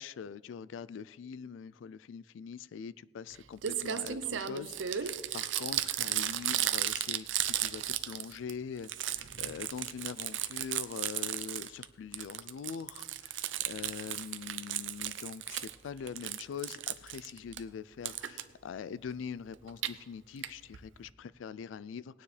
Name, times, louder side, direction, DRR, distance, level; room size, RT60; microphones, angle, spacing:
voice 1, 0.0-22.2, left 6 dB, 85° left, 18 dB, 0.3 m, -43 dB
Crumpling crinkling, 3.3-3.4 3.6-8.5 8.8-11.8 12.1-15.7 16.1-17.6 18.0-18.4 19.5-19.9 20.4-20.5 20.7-20.8 21.0-21.1, right 11 dB, 90° right, 0.6 m, -34 dB
18.5 x 9.6 x 3.3 m, 1.4 s
head